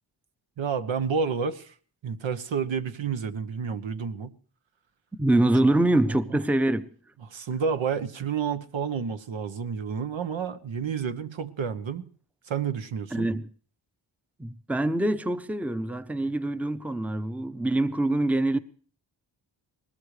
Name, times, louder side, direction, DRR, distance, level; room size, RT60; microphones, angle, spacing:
voice 1, 0.6-1.7 2.0-4.3 7.2-12.1 12.5-13.3, right 6 dB, 75° right, 1.1 m, -30 dB
voice 2, 5.1-6.9 13.1-13.5 14.4-18.6, right 1 dB, 5° right, 0.7 m, -25 dB
20.0 x 18.5 x 3.3 m
cardioid pair, 55°, 47 cm